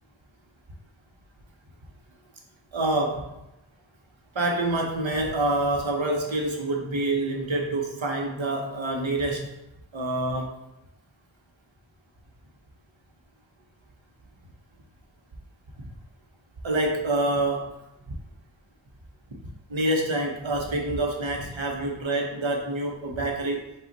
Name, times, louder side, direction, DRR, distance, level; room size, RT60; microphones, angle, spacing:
voice 1, 2.7-3.3 4.3-9.5 9.9-10.5 16.6-17.8 19.7-23.7, right 2 dB, 80° right, 1 dB, 0.9 m, -27 dB
5.1 x 2.4 x 4.0 m, 0.90 s
wide cardioid pair, 60°, 46 cm